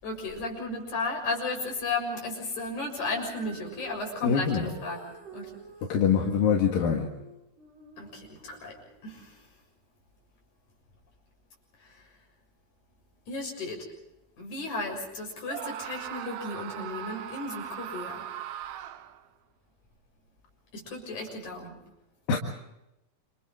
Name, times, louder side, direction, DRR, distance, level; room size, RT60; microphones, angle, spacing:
voice 1, 0.0-5.5 8.0-8.8 9.0-9.3 13.3-13.8 14.4-18.2 20.7-21.8, left 2 dB, 60° left, 1 dB, 8.3 m, -34 dB
Female singing, 3.0-9.3 10.0-10.1, right 2 dB, 70° right, 9.0 m, -49 dB
voice 2, 4.2-4.7 5.9-7.1 22.3-22.4, left 7 dB, 85° left, 0 dB, 3.7 m, -24 dB
Screaming, 15.4-19.2, right 10 dB, 85° right, 2.8 m, -39 dB
29.5 x 28.0 x 3.8 m, 0.89 s
omnidirectional pair, 4.0 m